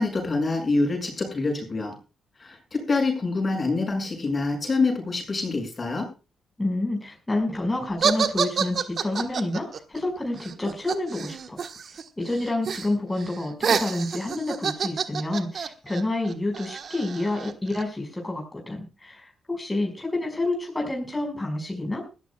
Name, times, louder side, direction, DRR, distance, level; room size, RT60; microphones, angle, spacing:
voice 1, 0.0-1.9 2.4-6.1, left 3 dB, 40° left, 3 dB, 6.4 m, -26 dB
voice 2, 6.6-11.6 12.2-22.1, left 2 dB, 20° left, 1 dB, 5.3 m, -29 dB
sound 1, 8.0-12.0 12.3-12.9 13.2-17.8, right 6 dB, 60° right, 1.3 m, -28 dB
21.0 x 14.0 x 2.3 m, 0.32 s
hypercardioid pair, 45°, 0 cm